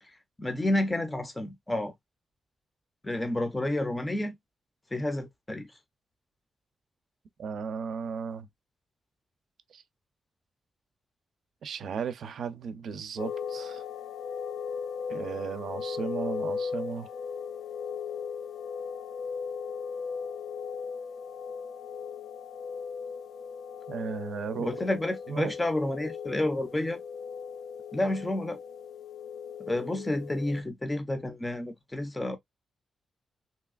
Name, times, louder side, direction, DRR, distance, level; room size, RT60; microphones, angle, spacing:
voice 1, 0.0-1.9 3.0-4.4 4.9-5.7 24.6-27.0 27.9-28.6 29.6-32.4, left 1 dB, 15° left, 0.5 m, -30 dB
voice 2, 7.4-8.5 9.7-9.8 11.6-13.8 15.1-17.1 23.9-24.8 25.3-25.5, right 6 dB, 70° right, 0.4 m, -35 dB
sound 1, 13.2-30.6, left 6 dB, 70° left, 0.4 m, -37 dB
3.2 x 2.8 x 2.2 m
wide cardioid pair, 145°, 0 cm